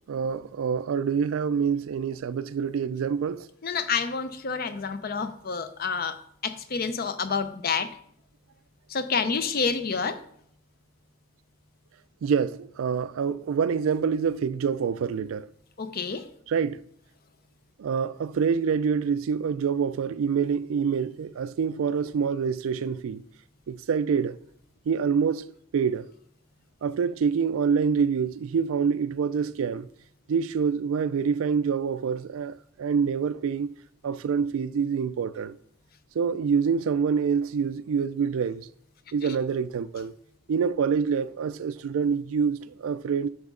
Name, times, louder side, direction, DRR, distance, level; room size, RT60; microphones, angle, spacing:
voice 1, 0.1-3.5 12.2-15.5 16.5-16.8 17.8-23.2 23.7-24.4 24.9-25.5 25.7-26.1 26.8-29.9 30.3-33.7 34.0-35.5 36.1-38.7 39.1-40.1 40.5-43.3, right 6 dB, 75° right, 0.3 m, -26 dB
voice 2, 3.6-7.9 8.9-10.2 15.8-16.3 39.2-39.3, left 5 dB, 45° left, 0.5 m, -29 dB
7.8 x 6.1 x 3.7 m
head